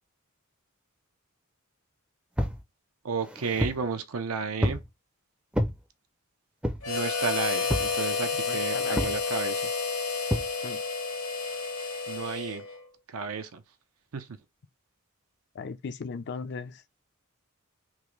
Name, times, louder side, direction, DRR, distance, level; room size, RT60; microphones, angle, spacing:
sound 1, 2.4-2.6 3.2-3.9 4.6-4.9 5.5-5.8 6.6-7.0 7.7-8.0 9.0-9.2 10.3-10.5, equal, 5° right, 0.4 m, -29 dB
voice 1, 3.0-4.8 6.9-9.7 12.1-12.6 13.1-13.6 14.1-14.4, right 5 dB, 85° right, 0.6 m, -32 dB
Harmonica, 6.8-12.8, left 4 dB, 80° left, 1.2 m, -30 dB
voice 2, 8.5-9.1 10.6-10.8 15.5-17.0, left 5 dB, 55° left, 0.4 m, -37 dB
3.5 x 2.5 x 3.1 m
head